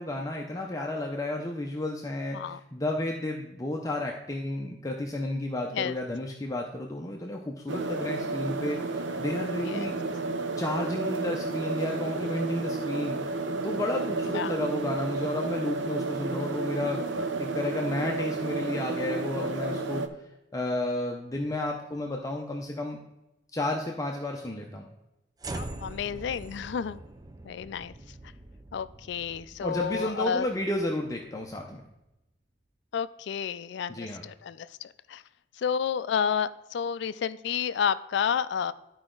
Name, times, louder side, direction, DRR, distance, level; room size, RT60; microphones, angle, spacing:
voice 1, 0.0-10.0 10.6-13.2 13.6-20.0 20.5-23.0 23.5-24.9 29.6-31.8 33.9-34.2, left 1 dB, 20° left, 1 dB, 0.6 m, -32 dB
sound 1, 7.7-20.1, right 3 dB, 80° right, 0.6 m, -31 dB
sound 2, 25.4-31.7, right 2 dB, 20° right, 0.5 m, -43 dB
voice 2, 25.5-27.0 27.4-27.9 28.7-30.5 32.9-35.2 35.6-38.7, left 7 dB, 70° left, 15 dB, 0.3 m, -30 dB
12.0 x 4.8 x 3.8 m, 0.94 s
head